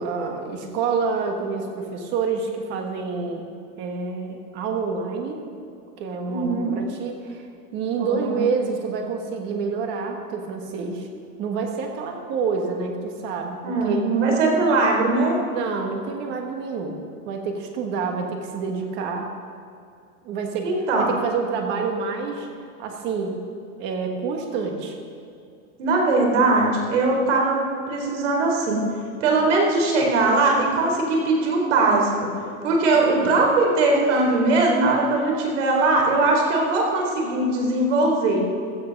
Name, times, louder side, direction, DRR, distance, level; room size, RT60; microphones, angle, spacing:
voice 1, 0.0-3.5 3.8-5.4 6.0-7.5 7.7-11.1 11.4-14.1 15.5-17.0 17.2-19.3 20.2-20.7 21.0-22.5 22.8-23.4 23.8-25.0 32.9-33.3, right 5 dB, 25° right, 3 dB, 1.5 m, -28 dB
voice 2, 6.3-6.8 7.9-8.4 13.6-15.4 20.6-21.1 25.8-27.6 27.9-28.8 29.2-32.3 32.6-38.4, right 3 dB, 55° right, 0 dB, 4.0 m, -20 dB
16.0 x 12.5 x 5.4 m, 2.5 s
supercardioid pair, 170°, 44 cm